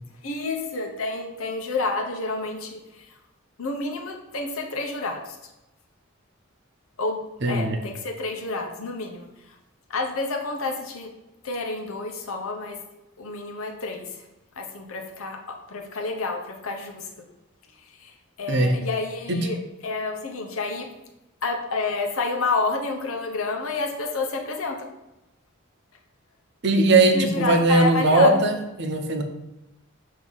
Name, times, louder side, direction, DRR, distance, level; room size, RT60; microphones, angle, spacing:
voice 1, 0.2-3.1 3.6-5.4 7.0-9.6 9.9-11.1 11.4-12.8 13.2-14.1 14.6-17.2 18.0-19.6 19.8-20.9 21.4-24.9 27.1-28.4, left 3 dB, 85° left, 2 dB, 0.8 m, -29 dB
voice 2, 7.4-7.8 18.5-18.7 26.6-29.2, right 2 dB, 55° right, 6 dB, 0.7 m, -19 dB
6.3 x 2.8 x 5.5 m, 0.94 s
head